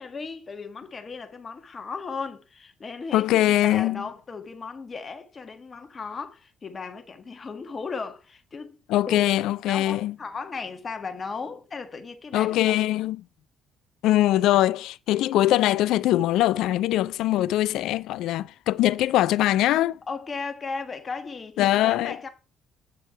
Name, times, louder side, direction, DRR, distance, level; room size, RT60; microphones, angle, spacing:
voice 1, 0.0-8.8 9.0-9.2 9.7-12.8 20.1-22.3, left 4 dB, 40° left, 1.6 m, -36 dB
voice 2, 3.1-4.1 8.9-10.1 12.3-13.2 14.0-20.0 21.6-22.2, left 14 dB, 70° left, 0.3 m, -22 dB
8.3 x 6.2 x 4.6 m
hypercardioid pair, 50°, 0 cm